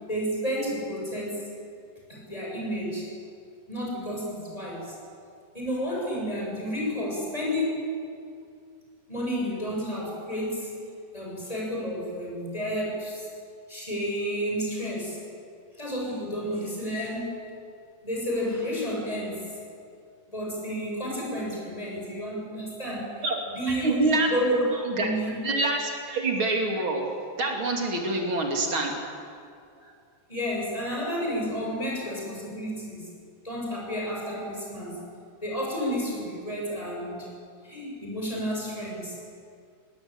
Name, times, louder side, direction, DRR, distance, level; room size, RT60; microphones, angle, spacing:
voice 1, 0.1-1.4 2.1-3.1 3.7-4.9 5.5-7.9 9.1-10.8 11.1-13.2 13.7-15.2 15.8-17.5 18.0-19.5 20.3-23.3 23.6-24.6 25.0-25.4 29.8-29.9 30.3-33.1 33.4-35.0 35.4-37.3 37.6-39.1, equal, 15° left, -3 dB, 7.4 m, -31 dB
voice 2, 23.7-24.3 25.0-25.1 25.4-27.0 27.4-28.9, right 2 dB, 80° right, 1 dB, 3.6 m, -26 dB
21.5 x 19.5 x 9.0 m, 2.3 s
omnidirectional pair, 2.2 m